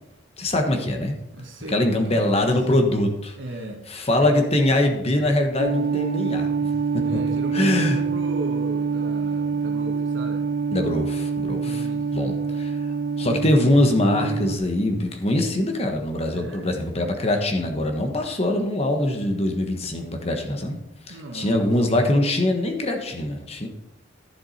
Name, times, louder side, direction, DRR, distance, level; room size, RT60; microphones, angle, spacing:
voice 1, 0.4-1.2 1.7-3.3 3.9-7.0 7.5-8.0 10.7-11.9 12.1-12.7 13.2-20.8 21.1-23.7, left 1 dB, 35° left, 3 dB, 1.3 m, -23 dB
voice 2, 1.3-2.5 3.3-3.9 7.0-10.5 11.6-12.4 16.3-16.7 21.1-22.1, right 1 dB, 90° right, 1 dB, 1.4 m, -37 dB
sound 1, 5.6-14.6, right 5 dB, 70° right, 1.0 m, -25 dB
11.5 x 7.2 x 4.3 m, 0.93 s
head